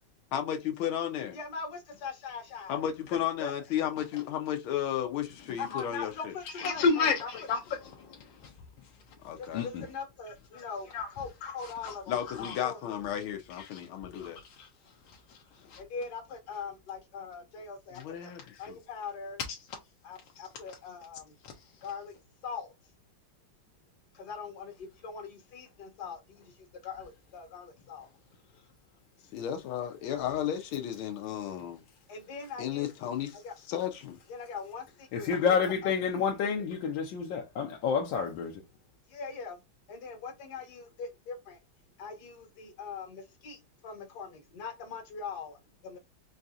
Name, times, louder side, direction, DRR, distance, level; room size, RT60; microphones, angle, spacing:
voice 1, 0.3-1.4 2.7-6.3 9.2-9.6 12.1-14.4 17.9-18.4 29.3-31.8 32.6-33.4 33.7-34.2, left 10 dB, 85° left, 1.5 m, -33 dB
voice 2, 1.3-2.8 3.4-3.5 5.6-7.5 9.3-12.8 15.8-18.3 18.6-19.4 20.0-21.3 21.8-22.1 22.4-22.7 24.1-26.2 26.8-28.1 32.1-32.9 33.4-33.5 34.3-35.5 35.8-35.9 39.1-39.6 39.9-41.6 42.0-46.0, left 5 dB, 55° left, 1.6 m, -41 dB
voice 3, 6.6-7.6 9.5-9.6 10.9-11.1 11.4-11.5 11.8-11.9 15.7-15.8 35.1-38.5, left 6 dB, 70° left, 1.3 m, -28 dB
4.9 x 2.7 x 2.3 m
omnidirectional pair, 2.3 m